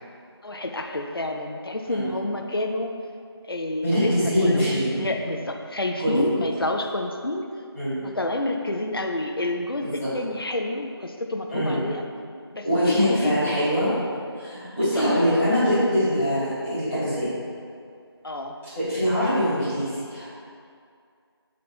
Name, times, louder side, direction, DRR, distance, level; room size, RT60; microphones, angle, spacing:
voice 1, 0.4-2.9 3.4-4.1 4.4-7.5 8.0-12.0 12.5-13.7 14.6-15.0 18.2-18.5, left 1 dB, 60° left, 3 dB, 0.5 m, -29 dB
voice 2, 3.8-5.0 6.0-6.3 7.7-8.0 9.8-10.1 11.5-11.8 12.6-13.9 14.4-17.2 18.7-20.3, equal, 5° right, -28 dB, 1.6 m, -23 dB
6.6 x 4.2 x 4.2 m, 2.3 s
figure-of-eight pair, 175°, 14 cm